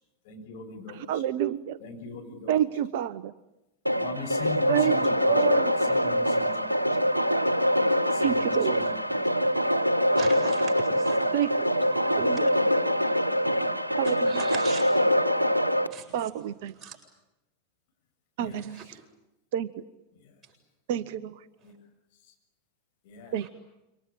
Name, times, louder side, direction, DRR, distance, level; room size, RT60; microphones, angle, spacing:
voice 1, 0.3-1.2 1.8-2.5 4.0-5.6 5.9-7.2 8.1-8.8 9.1-9.2 18.4-18.6 21.6-21.7 23.1-23.4, left 5 dB, 50° left, 3 dB, 7.1 m, -40 dB
voice 2, 0.9-1.8 2.5-3.3 4.7-6.0 8.2-8.9 11.3-11.5 12.0-12.5 14.0-14.4 16.1-16.7 18.4-19.0 19.5-19.7 20.9-21.4 23.3-23.5, right 11 dB, 50° right, 15 dB, 0.9 m, -29 dB
sound 1, 3.9-15.9, equal, 90° right, 1.4 m, -24 dB
voice 3, 10.2-11.2 12.2-12.3 14.3-14.9 15.9-16.0 16.8-17.0, right 6 dB, 20° right, 0 dB, 7.7 m, -38 dB
27.5 x 24.5 x 8.7 m, 0.95 s
figure-of-eight pair, 90°, 0 cm